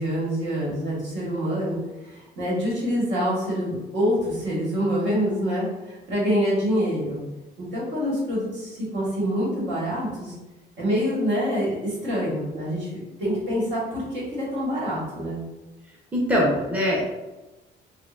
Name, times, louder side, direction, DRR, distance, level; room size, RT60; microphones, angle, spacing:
voice 1, 0.0-7.2 7.6-10.3 10.8-15.4, equal, 70° right, -6 dB, 1.5 m, -26 dB
voice 2, 16.1-17.0, equal, 5° right, -4 dB, 0.6 m, -22 dB
3.6 x 2.2 x 2.4 m, 1.1 s
cardioid pair, 120°, 19 cm